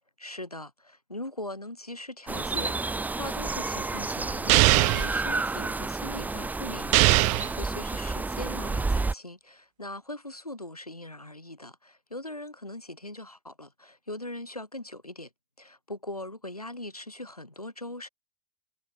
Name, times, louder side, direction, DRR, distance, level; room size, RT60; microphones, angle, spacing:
voice 1, 0.2-15.3 15.6-18.1, left 1 dB, 90° left, 3.3 m, -40 dB
sound 1, 2.3-9.1, right 3 dB, 10° right, 1.8 m, -30 dB
sound 2, 4.5-5.1 6.9-7.5, right 29 dB, 40° right, 1.0 m, -20 dB
figure-of-eight pair, 90°, 19 cm